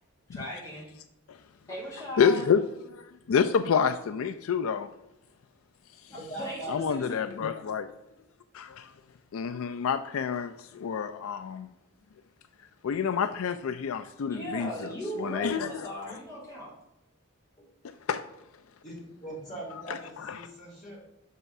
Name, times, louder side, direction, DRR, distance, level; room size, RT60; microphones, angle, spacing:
voice 1, 0.3-0.9 1.7-2.5 6.1-7.3 14.3-16.7, equal, 15° left, -6 dB, 2.9 m, -38 dB
voice 2, 2.2-2.6 2.9-4.9 6.0-6.1 6.7-7.9 8.5-8.9 9.3-11.7 12.8-14.9 15.2-15.9 18.1-18.3 19.9-20.5, left 6 dB, 75° left, 12 dB, 0.4 m, -28 dB
voice 3, 6.1-6.8 18.8-21.0, right 2 dB, 35° left, -5 dB, 3.2 m, -41 dB
6.4 x 5.6 x 5.9 m, 0.89 s
head